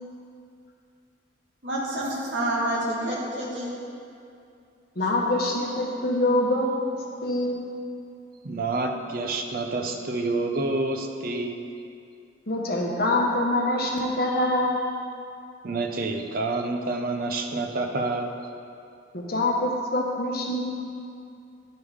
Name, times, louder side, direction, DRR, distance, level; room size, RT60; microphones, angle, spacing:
voice 1, 1.6-3.7, right 1 dB, 75° right, -5 dB, 1.6 m, -28 dB
voice 2, 5.0-7.6 12.5-14.8 19.1-20.6, left 1 dB, 55° left, -1 dB, 0.9 m, -25 dB
voice 3, 8.4-11.6 15.6-18.3, right 2 dB, 50° right, 4 dB, 0.5 m, -28 dB
10.0 x 3.6 x 4.7 m, 2.5 s
head